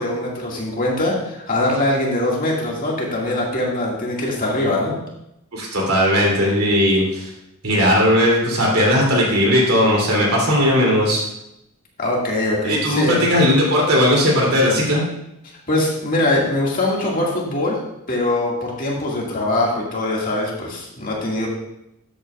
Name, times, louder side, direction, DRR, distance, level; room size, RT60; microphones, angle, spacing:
voice 1, 0.0-4.9 12.0-13.3 15.7-17.8 18.1-21.5, left 1 dB, 40° left, -3 dB, 2.1 m, -22 dB
voice 2, 5.5-7.3 7.6-11.2 12.6-15.0, equal, 70° right, -2 dB, 3.1 m, -17 dB
12.5 x 8.4 x 2.4 m, 0.85 s
head